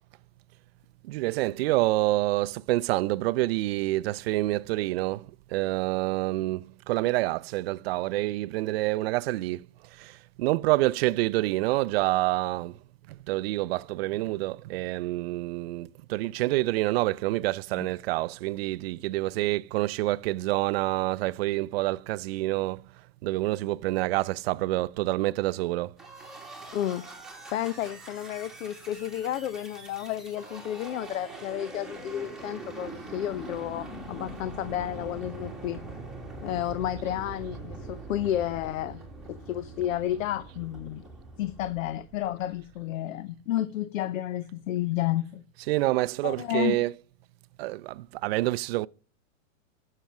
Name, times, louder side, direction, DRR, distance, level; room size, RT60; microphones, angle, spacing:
voice 1, 1.0-9.7 9.9-12.8 13.1-22.9 23.2-25.9 45.6-47.0 47.6-48.9, right 18 dB, 50° right, 0.4 m, -27 dB
sound 1, 26.0-42.6, right 2 dB, ahead, 1.9 m, -43 dB
voice 2, 26.7-27.0 27.5-35.8 36.4-39.0 39.3-41.0 41.4-45.4 46.2-46.8, left 12 dB, 75° left, 0.8 m, -31 dB
11.5 x 6.7 x 5.9 m
supercardioid pair, 150°, 40 cm